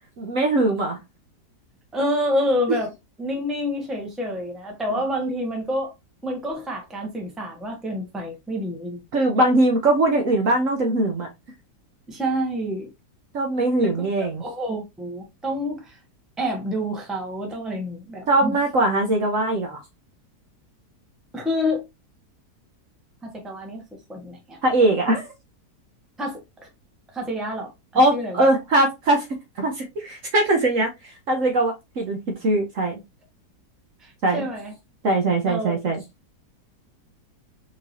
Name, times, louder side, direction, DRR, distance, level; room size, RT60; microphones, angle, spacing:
voice 1, 0.2-1.0 9.1-11.3 13.3-14.4 18.3-19.8 24.6-25.3 27.9-29.2 29.6-32.9 34.2-34.4 35.0-36.0, right 2 dB, 60° right, 1.0 m, -21 dB
voice 2, 1.9-2.9 3.2-5.9 6.2-9.0 12.1-12.9 13.8-14.1 14.4-16.0 16.4-18.6 21.3-21.8 23.2-23.8 24.1-24.6 26.2-26.4 27.1-28.5 34.0-34.7 35.5-35.9, equal, ahead, 0.8 m, -28 dB
4.6 x 2.7 x 2.9 m
omnidirectional pair, 1.8 m